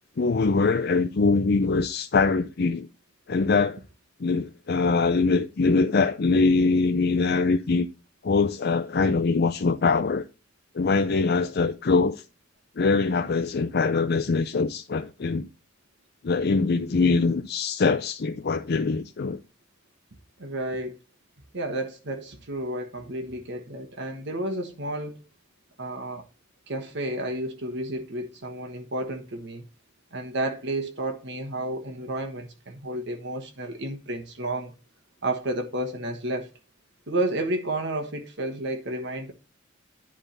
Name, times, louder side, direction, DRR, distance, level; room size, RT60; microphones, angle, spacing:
voice 1, 0.2-2.9 3.3-3.8 4.2-7.9 8.2-10.2 10.7-12.2 12.8-15.5 16.2-19.4, left 4 dB, 55° left, 0.5 m, -23 dB
voice 2, 20.4-21.0 21.5-25.2 25.8-26.2 26.7-29.6 30.1-34.7 35.2-36.5 37.1-39.3, right 1 dB, 65° right, 1.3 m, -31 dB
10.5 x 3.7 x 6.7 m
head